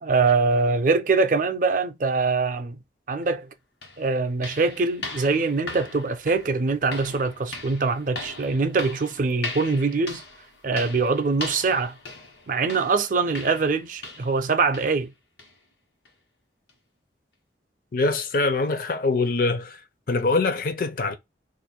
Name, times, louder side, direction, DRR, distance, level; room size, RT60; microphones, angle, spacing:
voice 1, 0.0-2.7 3.1-3.5 4.0-10.2 10.6-12.0 12.5-15.1, right 4 dB, 45° right, 0.4 m, -23 dB
sound 1, 3.2-3.3 3.8-14.5 14.7-15.0 15.4-15.6 16.1-16.2 16.7-16.8, left 3 dB, 80° left, 1.2 m, -39 dB
voice 2, 17.9-19.8 20.1-21.2, left 3 dB, 50° left, 0.5 m, -23 dB
2.5 x 2.5 x 4.1 m
head